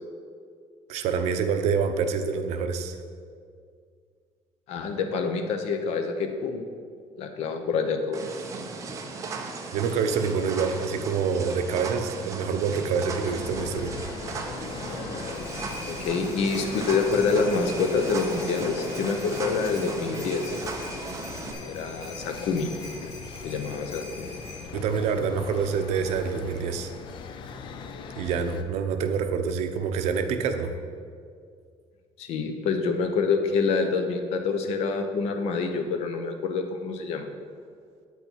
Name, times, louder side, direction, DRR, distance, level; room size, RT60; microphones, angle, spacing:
voice 1, 0.9-3.0 9.7-13.9 14.3-14.4 14.9-15.0 24.7-26.9 28.2-30.7, right 6 dB, 70° right, 7 dB, 0.7 m, -27 dB
voice 2, 4.7-6.6 7.2-8.2 15.9-20.5 21.6-22.7 23.0-23.1 23.4-24.3 32.2-37.3, left 4 dB, 65° left, 6 dB, 0.9 m, -27 dB
sound 1, 8.1-21.5, right 4 dB, 30° right, 0.8 m, -37 dB
sound 2, 13.2-28.6, left 5 dB, 45° left, 0.6 m, -39 dB
sound 3, 15.0-24.6, left 1 dB, 30° left, 2.5 m, -44 dB
8.5 x 8.2 x 4.5 m, 2.2 s
cardioid pair, 175°, 11 cm